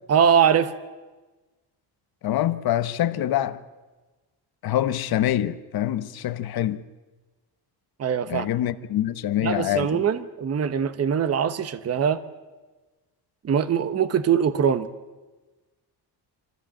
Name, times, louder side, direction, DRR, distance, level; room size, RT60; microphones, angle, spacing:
voice 1, 0.1-0.7 8.0-8.5 9.4-12.2 13.4-14.9, right 7 dB, 40° right, 1.0 m, -22 dB
voice 2, 2.2-3.6 4.6-6.8 8.3-10.0, left 12 dB, 65° left, 1.0 m, -25 dB
25.5 x 14.5 x 8.8 m
cardioid pair, 135°, 40 cm